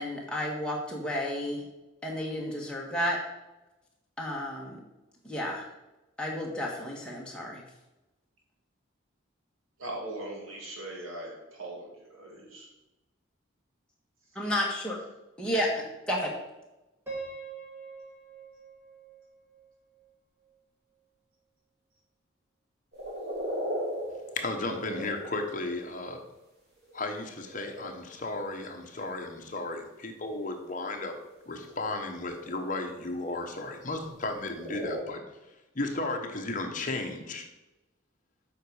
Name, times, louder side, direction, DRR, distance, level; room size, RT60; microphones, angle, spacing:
voice 1, 0.0-1.6 2.0-3.2 4.2-4.8 5.2-5.7 6.2-7.6 14.3-15.0 15.4-15.7 16.1-16.3, equal, 5° left, -3 dB, 1.5 m, -31 dB
voice 2, 9.8-12.7, right 1 dB, 80° right, -2 dB, 2.0 m, -40 dB
Piano, 17.1-20.1, right 4 dB, 10° right, 2.0 m, -43 dB
sound 1, 22.9-26.2 26.8-27.9 30.0-35.0, equal, 50° right, 2.5 m, -38 dB
voice 3, 24.3-26.2 26.9-31.2 31.5-35.2 35.7-37.5, left 2 dB, 40° left, 4 dB, 1.0 m, -34 dB
7.8 x 5.2 x 4.8 m, 1.0 s
head